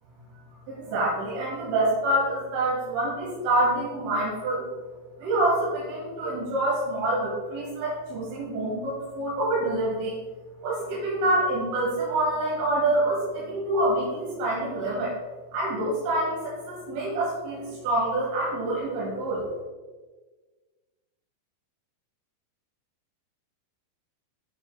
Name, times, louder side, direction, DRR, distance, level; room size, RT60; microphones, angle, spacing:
voice 1, 0.7-4.7 5.2-10.2 10.6-15.2 15.5-19.4, right 1 dB, 90° right, -5 dB, 4.3 m, -26 dB
16.0 x 5.9 x 2.3 m, 1.3 s
omnidirectional pair, 5.5 m